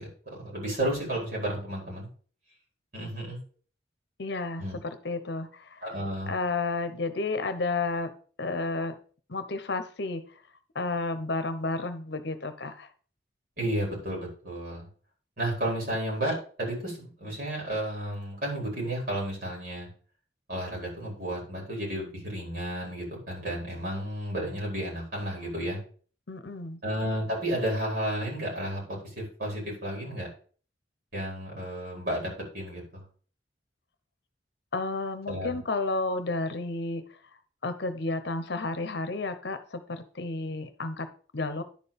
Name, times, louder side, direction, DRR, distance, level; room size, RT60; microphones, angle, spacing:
voice 1, 0.0-2.1 2.9-3.4 4.6-4.8 5.8-6.3 13.6-14.9 15.4-19.9 20.5-25.8 26.8-30.3 31.1-33.0 35.3-35.6, right 1 dB, 55° right, -3 dB, 4.6 m, -32 dB
voice 2, 4.2-5.9 6.3-8.1 8.4-9.0 9.3-10.4 10.7-12.9 26.3-26.8 34.7-37.0 37.6-41.6, left 3 dB, 60° left, 10 dB, 0.8 m, -32 dB
10.5 x 4.6 x 5.2 m, 0.41 s
head